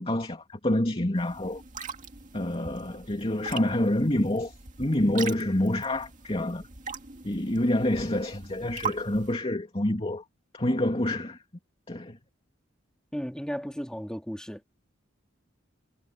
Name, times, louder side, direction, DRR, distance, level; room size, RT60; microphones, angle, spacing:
voice 1, 0.0-1.6 2.3-6.7 7.2-10.2 10.5-11.4 11.9-12.2, left 1 dB, 30° left, 2.8 m, -27 dB
sound 1, 1.2-9.3, right 6 dB, 40° right, 2.2 m, -41 dB
voice 2, 13.1-14.6, equal, 5° left, 2.8 m, -34 dB
head